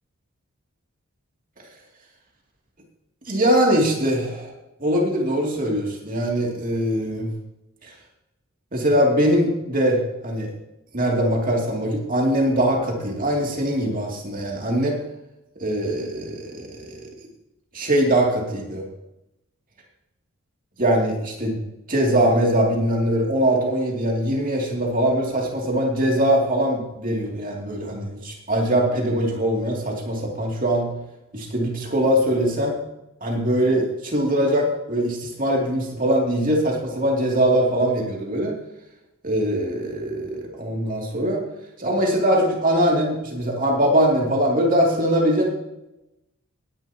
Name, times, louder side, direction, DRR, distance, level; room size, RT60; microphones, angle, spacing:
voice 1, 3.3-4.5 4.8-7.3 7.8-7.9 8.7-10.5 10.9-15.0 15.6-17.0 17.7-18.8 20.8-21.6 21.9-30.9 31.3-32.8 33.2-38.5 39.2-41.4 41.8-45.5, right 1 dB, 40° right, -1 dB, 2.5 m, -22 dB
17.5 x 10.5 x 2.9 m, 0.91 s
head